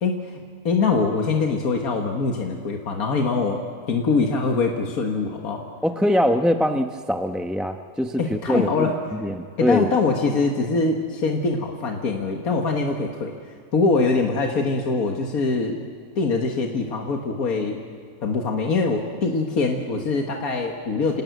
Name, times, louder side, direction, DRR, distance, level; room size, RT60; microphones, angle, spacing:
voice 1, 0.0-3.6 3.9-5.6 8.2-9.0 9.6-13.3 13.7-15.8 16.2-17.8 18.2-21.2, left 4 dB, 85° left, 2 dB, 2.0 m, -23 dB
voice 2, 5.8-8.9 9.2-9.9, equal, ahead, 5 dB, 0.6 m, -23 dB
27.5 x 18.5 x 9.3 m, 2.1 s
omnidirectional pair, 1.5 m